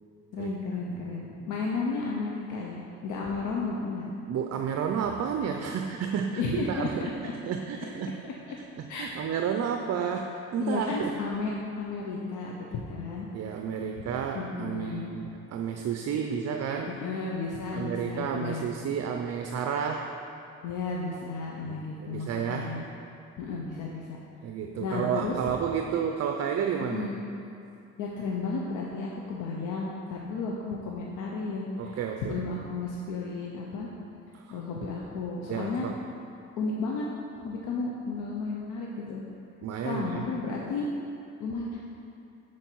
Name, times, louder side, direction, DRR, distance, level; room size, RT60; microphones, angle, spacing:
voice 1, 0.3-4.1 6.3-6.9 8.0-8.1 8.9-9.2 10.6-13.3 14.3-15.1 16.9-18.7 20.6-22.9 23.4-24.2 24.8-25.4 26.8-27.2 28.0-33.9 34.5-35.9 36.6-37.1 37.3-39.2 39.8-40.9 41.4-41.8, left 4 dB, 85° left, -2 dB, 0.8 m, -33 dB
voice 2, 0.9-1.2 4.3-7.1 7.5-8.2 8.8-11.1 13.3-17.0 17.7-20.2 21.6-22.7 24.4-27.1 31.8-32.4 34.3-34.6 35.5-36.0 39.6-40.2, right 7 dB, 55° right, 4 dB, 0.5 m, -31 dB
9.9 x 4.5 x 4.6 m, 2.6 s
cardioid pair, 90°, 30 cm